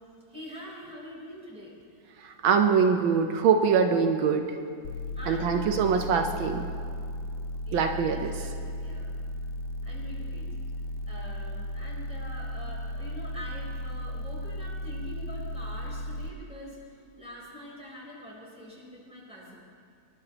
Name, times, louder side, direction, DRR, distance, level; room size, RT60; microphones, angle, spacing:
voice 1, 0.3-1.8 4.9-5.8 7.7-9.1 9.8-10.5 11.1-19.5, equal, 5° right, -6 dB, 4.0 m, -44 dB
voice 2, 2.2-4.5 5.3-6.7 7.7-8.5, right 6 dB, 85° right, 5 dB, 1.5 m, -24 dB
sound 1, 4.8-16.3, left 1 dB, 75° left, 1.1 m, -35 dB
25.5 x 11.0 x 2.9 m, 2.2 s
omnidirectional pair, 2.1 m